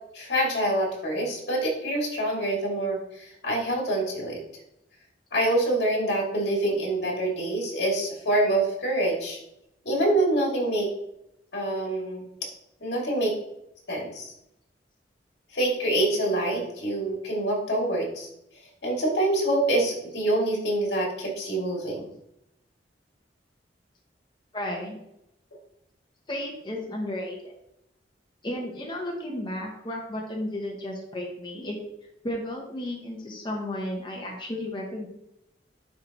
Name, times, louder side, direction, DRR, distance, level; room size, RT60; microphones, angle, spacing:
voice 1, 0.1-4.4 5.3-9.4 9.8-10.9 11.5-12.3 12.8-13.3 13.9-14.3 15.5-18.3 18.8-22.1, right 1 dB, 70° left, -2 dB, 2.4 m, -26 dB
voice 2, 24.5-25.0 26.3-27.5 28.4-31.8 32.2-35.1, left 1 dB, 25° left, -1 dB, 0.9 m, -33 dB
10.0 x 3.4 x 2.9 m, 0.82 s
head